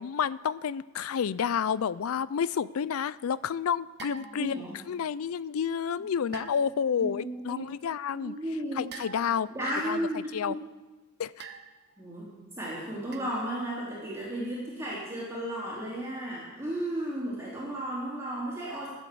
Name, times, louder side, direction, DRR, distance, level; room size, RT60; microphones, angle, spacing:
voice 1, 0.0-8.3 8.8-9.5 9.8-10.6 11.2-11.4, left 7 dB, 75° left, 19 dB, 0.4 m, -30 dB
sound 1, 4.0-4.7 6.3-6.9 8.9-9.6 11.4-12.0 13.1-13.4, right 5 dB, 50° right, 0.9 m, -45 dB
voice 2, 4.4-4.7 6.3-6.4 7.0-7.6 8.1-8.8 9.5-10.6 12.0-18.9, right 1 dB, 15° right, -8 dB, 3.6 m, -34 dB
15.0 x 8.1 x 6.9 m, 1.2 s
head